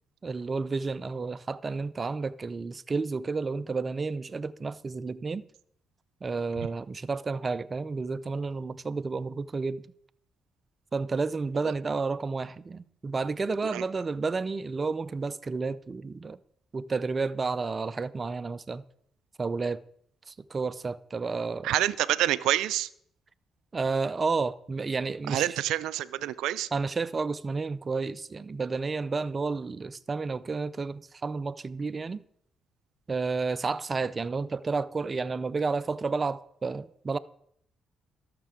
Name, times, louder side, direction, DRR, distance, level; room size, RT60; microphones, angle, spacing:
voice 1, 0.2-5.4 6.2-9.8 10.9-16.4 16.7-18.8 19.4-19.8 20.3-21.7 23.7-25.6 26.7-32.2 33.1-37.2, right 4 dB, 30° right, 0.4 m, -31 dB
voice 2, 21.6-22.9 25.3-26.7, right 14 dB, 90° right, 0.4 m, -27 dB
12.0 x 6.8 x 4.9 m
cardioid pair, 90°, 0 cm